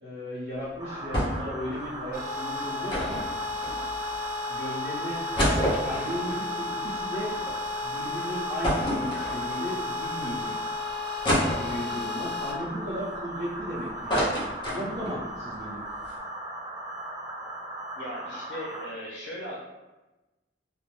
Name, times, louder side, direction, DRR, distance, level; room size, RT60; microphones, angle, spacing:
voice 1, 0.0-3.2 4.5-7.3 7.8-10.5 11.4-14.2 14.6-15.8, equal, 90° right, -10 dB, 0.7 m, -35 dB
sound 1, 0.8-18.9, right 1 dB, 20° right, 0.4 m, -38 dB
sound 2, 1.1-1.6 1.8-1.9 2.9-4.2 4.7-4.8 5.1-7.5 7.9-8.0 8.6-9.8 10.3-10.4 11.2-12.1 12.6-13.6 13.9-15.2 15.6-15.7 15.9-16.1, equal, 30° left, 0.7 m, -28 dB
sound 3, 2.1-12.5, left 3 dB, 60° right, 0.9 m, -34 dB
voice 2, 17.9-19.6, equal, 80° left, -5 dB, 0.5 m, -38 dB
2.5 x 2.0 x 3.1 m, 1.1 s
head